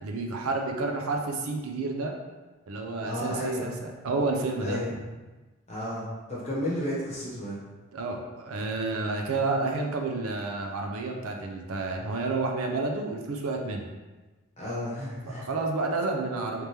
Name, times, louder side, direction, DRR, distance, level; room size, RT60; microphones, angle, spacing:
voice 1, 0.0-2.1 2.7-4.8 7.9-13.8 15.2-16.6, right 3 dB, 85° right, 2 dB, 0.5 m, -30 dB
voice 2, 3.0-3.7 4.6-5.0 5.7-7.6 14.6-15.4, equal, 30° left, -7 dB, 1.0 m, -32 dB
3.4 x 2.9 x 3.3 m, 1.2 s
head